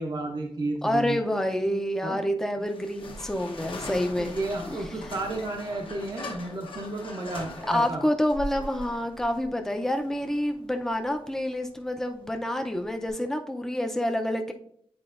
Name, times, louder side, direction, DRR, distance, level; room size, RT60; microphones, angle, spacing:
voice 1, 0.0-1.2 2.0-2.2 4.2-8.0, right 2 dB, 45° right, 1 dB, 0.7 m, -32 dB
voice 2, 0.8-4.4 4.7-4.8 7.7-14.5, left 1 dB, 5° left, 4 dB, 0.5 m, -28 dB
sound 1, 2.6-13.1, left 2 dB, 60° left, 0.9 m, -41 dB
8.7 x 4.3 x 2.5 m, 0.64 s
wide cardioid pair, 130°, 10 cm